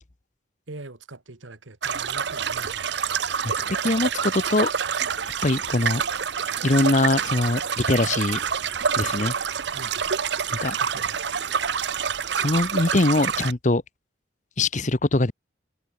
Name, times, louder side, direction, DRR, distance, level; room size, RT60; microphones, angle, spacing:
voice 1, 0.7-3.0 9.7-10.0 10.8-11.4, right 2 dB, 85° right, 1.8 m, -42 dB
sound 1, 1.8-13.5, right 7 dB, 65° right, 0.8 m, -27 dB
voice 2, 3.4-4.7 5.4-6.0 6.6-8.4 9.0-9.3 10.5-10.8 12.3-13.8 14.6-15.3, left 2 dB, 40° left, 1.0 m, -22 dB
head